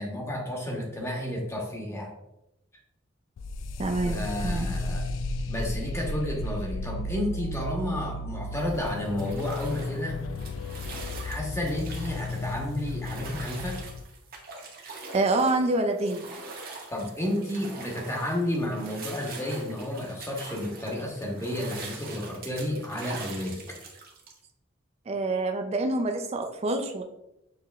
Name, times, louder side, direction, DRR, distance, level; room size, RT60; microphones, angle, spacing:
voice 1, 0.0-2.1 4.0-5.1 5.5-10.2 11.2-13.8 16.9-23.6, left 1 dB, 15° left, -1 dB, 1.0 m, -31 dB
sound 1, 3.4-14.0, left 2 dB, 85° left, 0.3 m, -34 dB
voice 2, 3.8-4.2 4.4-4.7 15.1-16.2 25.1-27.0, right 2 dB, 35° right, 5 dB, 0.4 m, -26 dB
sound 2, 8.6-24.4, right 3 dB, 50° right, 0.9 m, -43 dB
6.6 x 3.1 x 2.3 m, 0.86 s
head